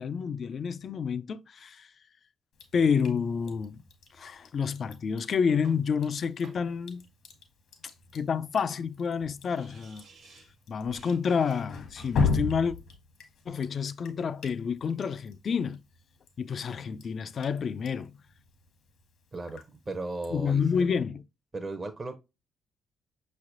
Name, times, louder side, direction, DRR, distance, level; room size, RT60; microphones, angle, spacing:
voice 1, 0.0-1.9 2.7-3.8 4.2-7.0 8.1-10.0 10.7-12.8 13.5-15.8 16.4-18.2 20.3-21.2, left 6 dB, 55° left, 0.3 m, -29 dB
Drip, 2.5-20.8, left 4 dB, 70° left, 1.1 m, -38 dB
sound 1, 5.6-6.7 8.7-8.8 9.1-9.2 9.4-10.6 10.9-12.3, right 4 dB, 70° right, 1.1 m, -56 dB
voice 2, 19.3-20.9 21.5-22.1, right 2 dB, 35° right, 0.6 m, -36 dB
5.7 x 3.2 x 2.5 m
hypercardioid pair, 45°, 0 cm